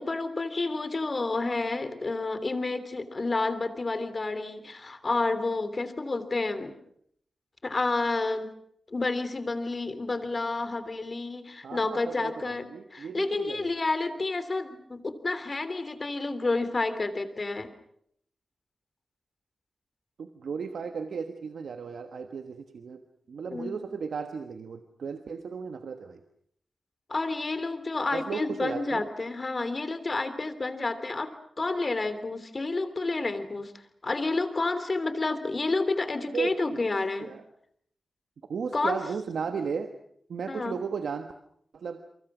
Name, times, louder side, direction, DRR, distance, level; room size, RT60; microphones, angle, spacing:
voice 1, 0.0-6.7 7.6-8.5 8.9-12.6 12.9-17.7 23.5-23.8 27.1-31.3 31.6-33.7 34.0-37.3 38.7-39.0 40.5-40.7, left 3 dB, 45° left, 12 dB, 3.2 m, -30 dB
voice 2, 11.6-13.7 20.2-23.0 23.3-26.2 28.1-29.1 36.3-36.8 37.2-37.4 38.5-39.9 40.3-41.3 41.7-42.0, right 5 dB, 85° right, 7 dB, 1.3 m, -35 dB
30.0 x 23.5 x 6.2 m, 0.68 s
cardioid pair, 60°, 0 cm